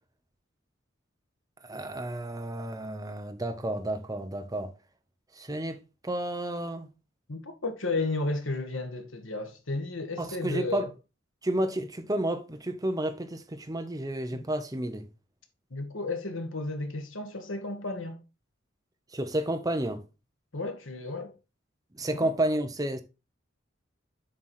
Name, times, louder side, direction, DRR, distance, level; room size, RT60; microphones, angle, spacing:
voice 1, 1.6-4.7 5.4-6.9 10.2-10.9 11.4-15.1 19.1-20.0 21.9-23.0, right 1 dB, 20° right, 0.9 m, -31 dB
voice 2, 7.3-10.9 14.3-14.4 15.7-18.2 20.5-21.3 22.1-22.3, left 2 dB, 80° left, 1.5 m, -33 dB
7.5 x 4.7 x 4.3 m
head